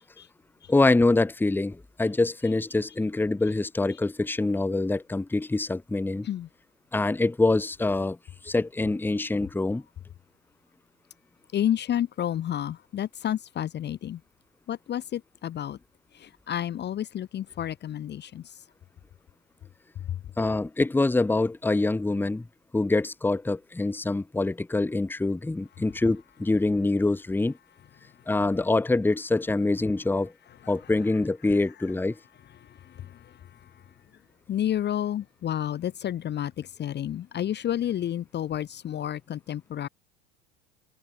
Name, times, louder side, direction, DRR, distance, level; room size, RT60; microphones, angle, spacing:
voice 1, 0.7-6.3 6.9-8.2 8.4-9.8 20.4-22.4 22.7-27.5 28.3-30.3 30.7-32.1, left 2 dB, 5° left, 1.0 m, -25 dB
voice 2, 11.5-14.2 14.7-15.8 16.1-18.4 30.6-30.7 32.9-33.2 34.5-39.9, left 11 dB, 35° left, 0.9 m, -30 dB
hypercardioid pair, 90°, 32 cm